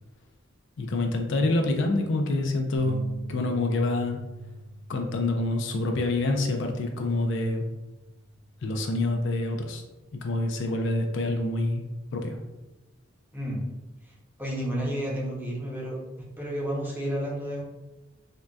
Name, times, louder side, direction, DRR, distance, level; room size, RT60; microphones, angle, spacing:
voice 1, 0.8-3.0 3.3-4.2 4.9-7.7 8.6-9.8 10.2-11.8 12.1-12.4, left 2 dB, 65° left, 4 dB, 0.4 m, -26 dB
sound 1, 2.8-9.0, equal, 50° right, 1.0 m, -45 dB
voice 2, 13.3-13.6 14.4-16.0 16.4-17.6, equal, 10° right, -4 dB, 0.7 m, -31 dB
3.7 x 2.2 x 2.2 m, 1.1 s
head